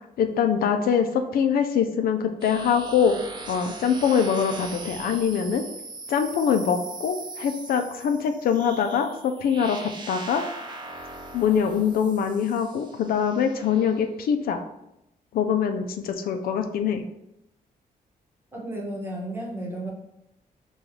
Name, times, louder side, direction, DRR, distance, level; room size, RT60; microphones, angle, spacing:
voice 1, 0.2-1.1 1.3-3.1 3.5-5.6 6.1-10.4 11.3-14.6 15.3-17.0, left 7 dB, 75° left, 7 dB, 0.4 m, -23 dB
sound 1, 2.4-14.0, right 3 dB, 30° right, 0.6 m, -40 dB
voice 2, 18.5-19.9, right 1 dB, 15° right, -3 dB, 1.0 m, -33 dB
5.2 x 2.3 x 3.1 m, 0.83 s
cardioid pair, 130°, 15 cm